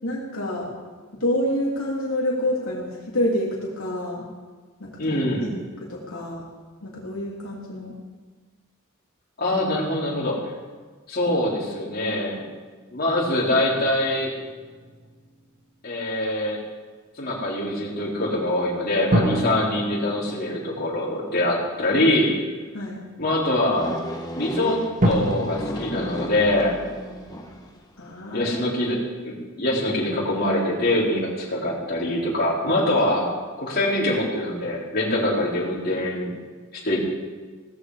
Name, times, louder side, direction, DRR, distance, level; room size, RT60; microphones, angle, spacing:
voice 1, 0.0-0.7 1.2-4.2 4.8-5.2 5.9-6.4 6.8-7.9 22.7-23.0 28.0-28.6, left 1 dB, 75° left, -4 dB, 2.9 m, -27 dB
voice 2, 5.0-5.5 9.4-10.4 11.1-12.4 12.9-14.3 15.8-16.6 17.2-22.3 23.2-24.0 24.3-26.8 28.3-36.3 36.7-37.0, left 1 dB, 45° left, -5 dB, 4.1 m, -24 dB
sound 1, 13.6-16.2 19.1-22.5 23.2-23.3 25.0-25.1, equal, 35° right, 2.1 m, -28 dB
sound 2, 23.7-27.8, equal, 15° left, 1.4 m, -33 dB
18.0 x 14.5 x 4.9 m, 1.4 s
head